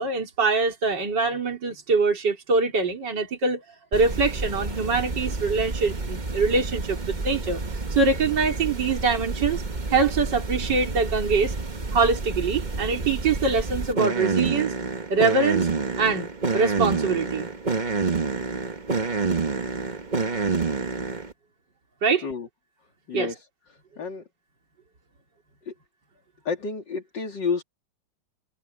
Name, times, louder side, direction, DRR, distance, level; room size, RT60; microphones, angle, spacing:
voice 1, 0.0-3.6 3.9-7.6 7.9-9.6 9.9-11.5 11.9-14.7 15.1-15.7 16.0-17.5 22.0-22.3 23.1-23.3, right 4 dB, 55° right, 4.1 m, -24 dB
sound 1, 3.9-21.3, right 3 dB, 25° right, 1.3 m, -28 dB
voice 2, 23.1-23.4 24.0-24.2 25.7-25.8 26.4-27.6, left 5 dB, 60° left, 3.2 m, -30 dB
omnidirectional pair, 2.2 m